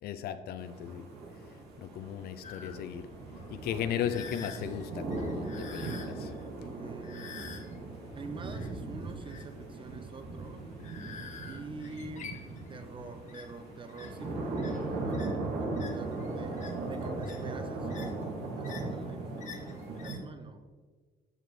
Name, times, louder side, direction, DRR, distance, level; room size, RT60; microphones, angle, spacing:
voice 1, 0.0-1.1 1.8-3.1 3.5-6.3, left 9 dB, 70° left, 0.5 m, -36 dB
sound 1, 0.6-20.1, right 2 dB, 75° right, 2.0 m, -38 dB
sound 2, 2.4-20.2, left 6 dB, 45° left, 0.9 m, -50 dB
voice 2, 6.6-7.4 8.1-10.7 11.5-12.4 12.7-20.7, right 3 dB, 30° right, 0.8 m, -47 dB
13.0 x 5.0 x 3.2 m
cardioid pair, 110°, 17 cm